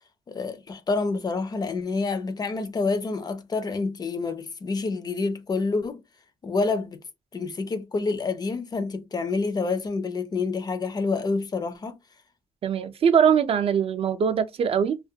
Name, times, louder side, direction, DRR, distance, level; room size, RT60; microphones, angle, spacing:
voice 1, 0.3-6.0 6.4-7.0 7.3-12.0, left 4 dB, 30° left, 0.4 m, -28 dB
voice 2, 12.6-15.0, right 7 dB, 45° right, 0.3 m, -22 dB
2.3 x 2.2 x 2.7 m
cardioid pair, 140°, 13 cm